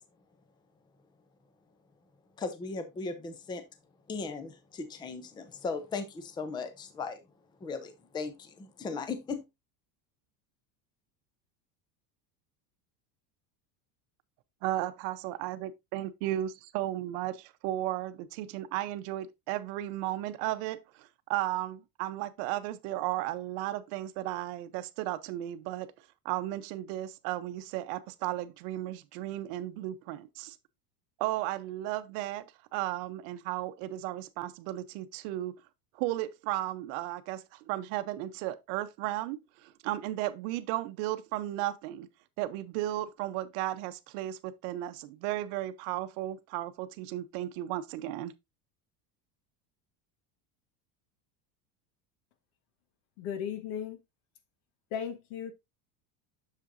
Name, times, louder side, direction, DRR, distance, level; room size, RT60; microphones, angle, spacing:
voice 1, 2.4-3.6 4.1-7.2 7.6-9.4, left 4 dB, 10° left, 0.5 m, -37 dB
voice 2, 14.6-25.9 26.2-30.6 31.2-32.4 32.7-35.5 35.9-42.1 42.4-48.3, right 14 dB, 60° right, 0.8 m, -34 dB
voice 3, 53.2-54.0 54.9-55.5, left 8 dB, 70° left, 1.4 m, -36 dB
7.5 x 6.7 x 2.5 m
cardioid pair, 160°, 44 cm